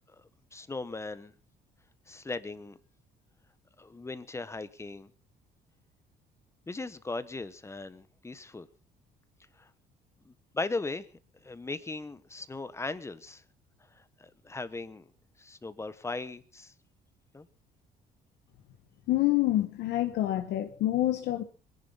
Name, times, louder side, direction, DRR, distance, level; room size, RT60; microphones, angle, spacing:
voice 1, 0.5-1.3 2.1-2.8 3.8-5.1 6.7-8.7 9.6-9.7 10.2-11.1 11.4-13.4 14.0-15.1 15.4-16.7 17.3-17.4, left 3 dB, 15° left, 1.2 m, -38 dB
voice 2, 19.1-21.4, left 15 dB, 80° left, 1.3 m, -27 dB
22.0 x 11.0 x 5.6 m
cardioid pair, 110°, 17 cm